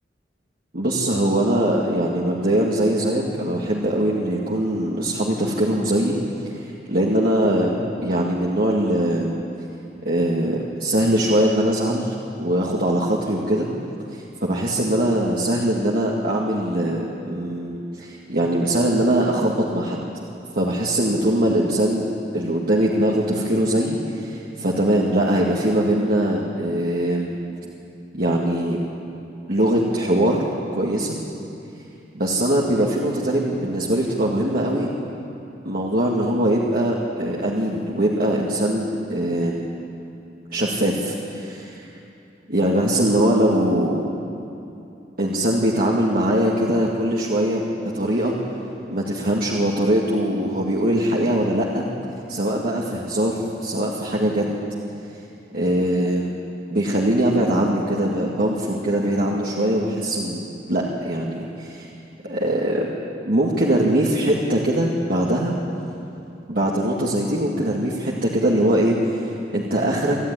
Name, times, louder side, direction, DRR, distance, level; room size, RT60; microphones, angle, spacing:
voice 1, 0.7-6.2 6.6-9.4 10.0-13.7 14.1-20.0 20.5-22.0 22.3-27.3 28.1-28.8 29.5-30.5 30.7-31.2 32.1-34.9 35.6-39.7 40.5-41.9 42.5-44.1 45.2-47.6 47.9-48.3 48.9-51.9 52.3-54.6 55.5-56.3 56.7-61.9 62.2-62.9 63.3-65.5 66.5-70.2, right 1 dB, 55° right, -4 dB, 2.1 m, -22 dB
26.0 x 15.0 x 9.8 m, 2.7 s
head